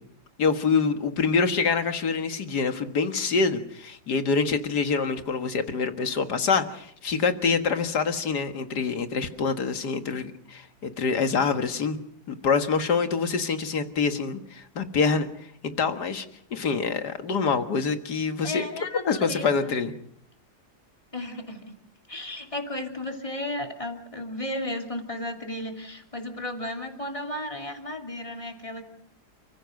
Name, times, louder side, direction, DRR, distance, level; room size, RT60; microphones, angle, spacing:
voice 1, 0.4-12.0 12.3-15.3 15.6-16.3 16.5-18.7 19.0-19.9, left 5 dB, 80° left, 8 dB, 2.2 m, -25 dB
voice 2, 18.4-19.7 21.1-21.8 22.1-28.8, left 1 dB, 20° left, 3 dB, 2.8 m, -34 dB
29.5 x 15.5 x 6.5 m, 0.70 s
omnidirectional pair, 1.7 m